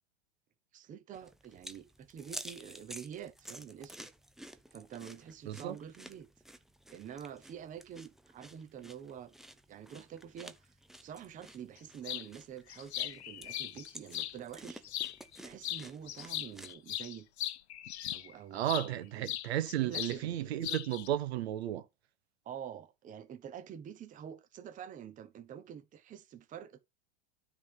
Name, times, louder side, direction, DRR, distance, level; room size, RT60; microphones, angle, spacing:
voice 1, 0.7-4.1 4.7-6.3 6.9-9.3 9.7-10.6 11.0-14.8 15.4-17.3 18.1-19.4 19.8-20.6 22.4-26.8, right 9 dB, 25° right, 0.9 m, -47 dB
sound 1, 1.1-16.7, right 1 dB, ahead, 0.5 m, -52 dB
voice 2, 5.5-5.8 18.5-21.8, right 12 dB, 75° right, 1.1 m, -33 dB
sound 2, 12.0-12.3 12.7-14.4 14.8-15.4 15.6-18.9 19.3-20.2 20.4-21.1, left 12 dB, 85° left, 0.7 m, -39 dB
9.5 x 3.8 x 5.6 m
hypercardioid pair, 120°, 32 cm